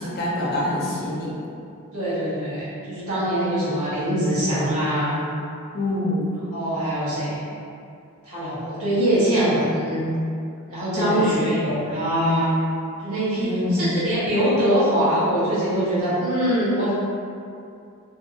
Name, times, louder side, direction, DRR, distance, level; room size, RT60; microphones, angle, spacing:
voice 1, 0.0-1.4 5.7-6.3 11.0-11.3 13.4-14.0, left 1 dB, 45° left, -5 dB, 0.6 m, -25 dB
voice 2, 1.9-5.3 6.5-7.4 8.2-10.1 10.7-12.6 13.0-16.9, equal, 85° right, -11 dB, 1.2 m, -23 dB
2.7 x 2.7 x 2.5 m, 2.5 s
head